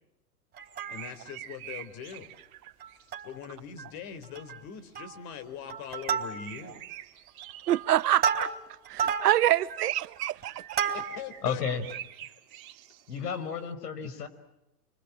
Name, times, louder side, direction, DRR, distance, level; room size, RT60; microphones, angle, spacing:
Plucked string instrument, 0.5-1.4 1.8-1.9 2.1-2.3 2.8-3.5 3.8-3.9 4.2-4.6 4.9-5.3 5.7-6.7 7.3-11.4 11.9-12.0, right 7 dB, 20° right, 3.4 m, -32 dB
sound 1, 0.6-3.2 5.7-8.5 9.3-9.6 10.4-13.7, right 12 dB, 60° right, 2.7 m, -46 dB
voice 1, 0.9-2.3 3.2-6.8 10.9-11.6 12.3-12.4 14.0-14.3, left 8 dB, 40° left, 4.5 m, -42 dB
voice 2, 7.7-8.5 8.9-10.9, right 13 dB, 75° right, 1.2 m, -26 dB
voice 3, 11.4-11.9 13.1-14.3, left 7 dB, 75° left, 5.9 m, -32 dB
29.5 x 25.5 x 7.6 m
hypercardioid pair, 140°, 48 cm